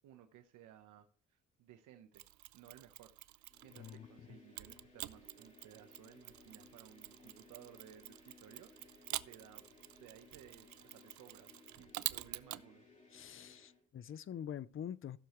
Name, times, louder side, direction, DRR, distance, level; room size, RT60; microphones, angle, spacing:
voice 1, 0.0-2.3 2.5-3.2 3.6-9.7 10.0-12.8, right 10 dB, 90° right, 1.0 m, -59 dB
Mechanisms, 2.1-4.1 4.6-12.6, right 16 dB, 75° right, 0.5 m, -47 dB
sound 1, 3.5-13.8, left 3 dB, 25° left, 3.9 m, -62 dB
voice 2, 13.1-15.2, left 9 dB, 45° left, 0.6 m, -45 dB
16.0 x 6.8 x 3.1 m
cardioid pair, 90°, 30 cm